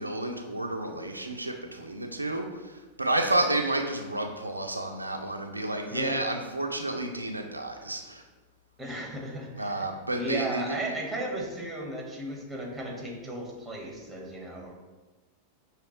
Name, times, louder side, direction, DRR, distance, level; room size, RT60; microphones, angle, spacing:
voice 1, 0.0-8.2 9.6-10.9, right 2 dB, 85° right, 3 dB, 0.4 m, -31 dB
voice 2, 5.9-6.3 8.8-9.9 10.1-14.7, right 1 dB, 5° right, -1 dB, 1.2 m, -35 dB
5.7 x 3.1 x 3.0 m, 1.2 s
figure-of-eight pair, 90°, 0 cm